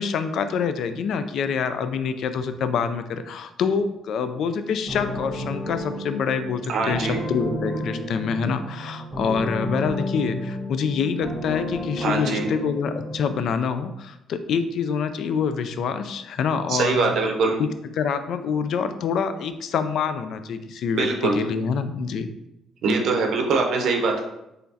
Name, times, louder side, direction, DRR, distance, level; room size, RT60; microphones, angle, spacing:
voice 1, 0.0-17.1 17.6-17.7 17.9-22.3, left 6 dB, 60° left, 10 dB, 0.3 m, -26 dB
sound 1, 4.9-13.4, left 1 dB, 5° left, 1.5 m, -32 dB
voice 2, 6.7-7.2 12.0-12.5 16.7-17.6 20.9-21.4 22.8-24.3, right 4 dB, 65° right, 2 dB, 0.6 m, -23 dB
4.5 x 3.2 x 2.7 m, 0.89 s
cardioid pair, 125°, 0 cm